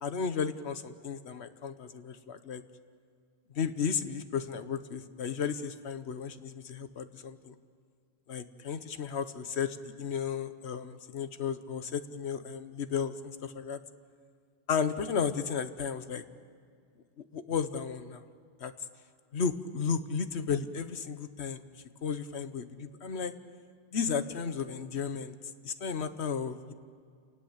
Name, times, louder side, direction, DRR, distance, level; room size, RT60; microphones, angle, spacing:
voice 1, 0.0-2.6 3.5-7.5 8.3-13.8 14.7-16.2 17.2-18.2 18.6-18.7 19.3-21.6 22.0-23.4 23.9-25.4 25.6-26.7, left 6 dB, 85° left, 11 dB, 1.3 m, -34 dB
28.0 x 19.0 x 8.0 m, 2.1 s
omnidirectional pair, 1.1 m